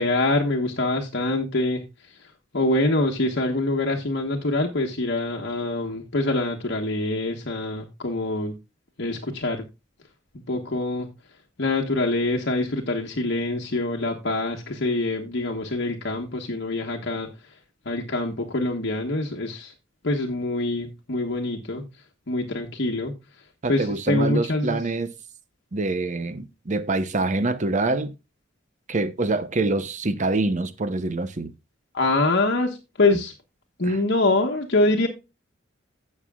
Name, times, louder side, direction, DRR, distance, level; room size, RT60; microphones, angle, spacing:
voice 1, 0.0-8.5 9.0-9.6 10.5-11.1 11.6-17.3 17.8-19.7 20.0-21.9 22.3-23.2 23.7-24.8 31.9-33.3 33.8-35.1, left 2 dB, 60° left, 1.2 m, -25 dB
voice 2, 23.6-25.1 25.7-28.1 28.9-31.5 33.8-34.0, right 2 dB, 40° right, 0.8 m, -25 dB
16.5 x 6.5 x 2.3 m
head